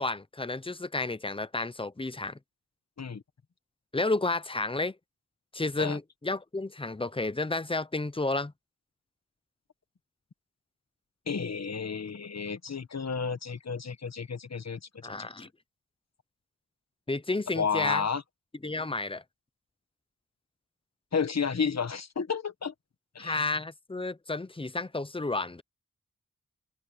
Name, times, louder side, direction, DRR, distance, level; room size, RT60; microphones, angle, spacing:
voice 1, 0.0-2.4 3.9-4.9 5.5-8.5 15.0-15.5 17.1-18.0 18.6-19.2 23.2-25.6, left 2 dB, 15° left, 0.8 m, -31 dB
voice 2, 11.3-15.3 17.6-18.2 21.1-22.7 23.2-23.4, left 6 dB, 50° left, 1.6 m, -32 dB
open air
wide cardioid pair, 105°, 33 cm